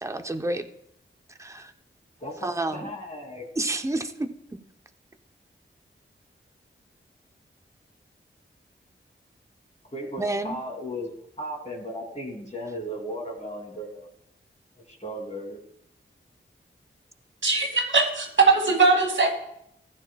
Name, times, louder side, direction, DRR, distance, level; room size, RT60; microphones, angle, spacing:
voice 1, 0.0-0.6 1.4-1.7 2.4-2.9 3.6-4.3 10.2-10.5, right 2 dB, 15° right, 7 dB, 0.8 m, -29 dB
voice 2, 2.2-3.4 9.9-14.1 14.9-15.6, equal, 35° left, -1 dB, 2.9 m, -36 dB
voice 3, 17.4-19.3, right 3 dB, 70° right, 2 dB, 2.3 m, -20 dB
15.0 x 9.8 x 2.3 m, 0.75 s
cardioid pair, 45°, 21 cm